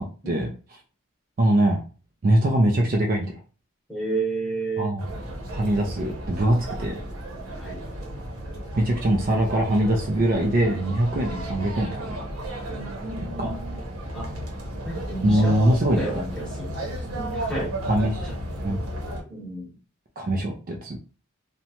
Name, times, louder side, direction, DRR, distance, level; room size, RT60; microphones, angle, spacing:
voice 1, 1.4-1.8 2.2-3.4 4.8-5.0 5.5-7.0 8.8-12.2 13.2-13.6 15.2-16.2 17.9-18.3 18.6-18.8 20.2-21.0, right 1 dB, 40° right, 1 dB, 0.4 m, -22 dB
voice 2, 3.9-4.9 7.6-7.8 11.1-11.5 12.7-13.8 14.1-14.3 14.8-15.6 15.9-16.8 17.1-17.8 18.2-18.4 19.3-19.8, right 2 dB, 5° left, -4 dB, 0.9 m, -32 dB
sound 1, 5.0-19.2, right 1 dB, 85° right, 0.9 m, -34 dB
2.8 x 2.1 x 2.8 m, 0.37 s
head